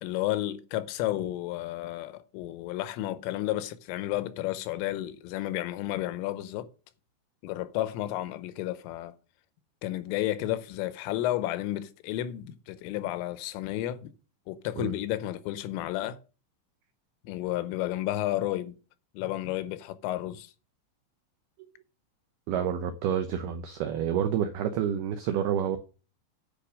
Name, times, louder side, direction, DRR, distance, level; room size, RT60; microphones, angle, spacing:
voice 1, 0.0-6.7 7.4-9.1 9.8-14.1 14.5-16.2 17.2-18.8 19.1-20.5, left 14 dB, 85° left, 3.4 m, -32 dB
voice 2, 22.5-25.8, right 9 dB, 90° right, 2.2 m, -28 dB
10.5 x 5.5 x 6.4 m
omnidirectional pair, 5.8 m